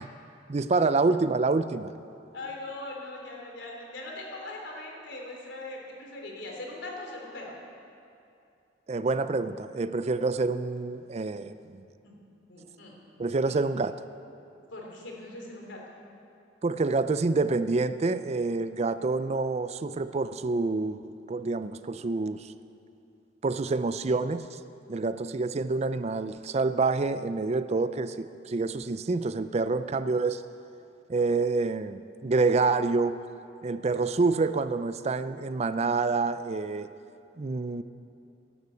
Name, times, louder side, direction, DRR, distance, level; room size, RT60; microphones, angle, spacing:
voice 1, 0.5-1.9 8.9-11.8 13.2-14.0 16.6-21.0 21.3-22.5 23.4-24.6 24.9-30.4 31.1-33.2 33.6-36.9 37.4-37.8, right 3 dB, 35° right, 12 dB, 0.4 m, -27 dB
voice 2, 2.3-7.6 12.0-12.1 12.5-13.0 13.4-13.6 14.7-15.8, left 2 dB, 80° left, 0 dB, 3.2 m, -40 dB
13.5 x 11.0 x 8.3 m, 2.6 s
head